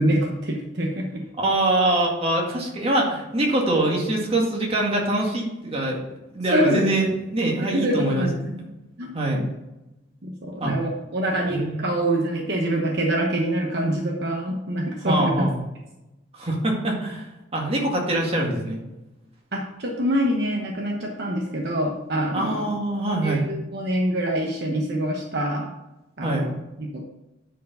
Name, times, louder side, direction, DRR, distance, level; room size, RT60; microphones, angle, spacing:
voice 1, 0.0-1.2 6.5-6.9 7.7-8.4 9.0-9.4 10.2-15.3 19.5-22.7 23.2-25.7 26.2-26.3 26.8-27.0, right 1 dB, 60° right, 1 dB, 1.0 m, -25 dB
voice 2, 1.4-6.0 6.3-8.6 9.1-9.4 10.6-10.7 11.5-12.0 15.0-15.6 16.4-17.3 17.5-18.8 22.3-23.4 26.2-26.5, right 1 dB, 30° right, -1 dB, 1.9 m, -24 dB
10.0 x 4.8 x 5.5 m, 0.99 s
head